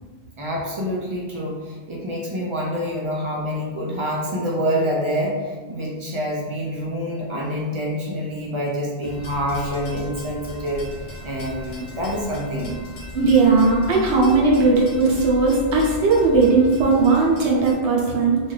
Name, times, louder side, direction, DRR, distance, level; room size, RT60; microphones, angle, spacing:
voice 1, 0.4-10.9 11.2-12.8, equal, 55° right, -4 dB, 0.3 m, -26 dB
sound 1, 9.0-17.7, left 1 dB, 70° left, 0.9 m, -37 dB
voice 2, 13.1-18.5, right 3 dB, 90° right, -3 dB, 1.0 m, -17 dB
2.6 x 2.3 x 3.2 m, 1.4 s
omnidirectional pair, 1.1 m